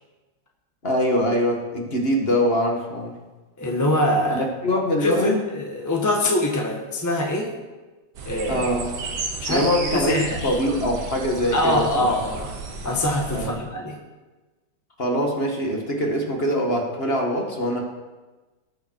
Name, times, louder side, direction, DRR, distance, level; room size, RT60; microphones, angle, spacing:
voice 1, 0.8-3.1 4.3-5.4 8.5-8.9 9.5-12.1 13.3-13.6 15.0-17.8, equal, 30° left, 1 dB, 1.7 m, -23 dB
voice 2, 3.6-4.4 5.0-7.5 8.2-8.6 9.4-10.6 11.5-12.5 12.8-14.0, left 1 dB, 10° left, -1 dB, 1.2 m, -24 dB
sound 1, 8.2-13.5, right 4 dB, 60° right, 1.8 m, -33 dB
18.5 x 7.0 x 4.7 m, 1.2 s
omnidirectional pair, 2.2 m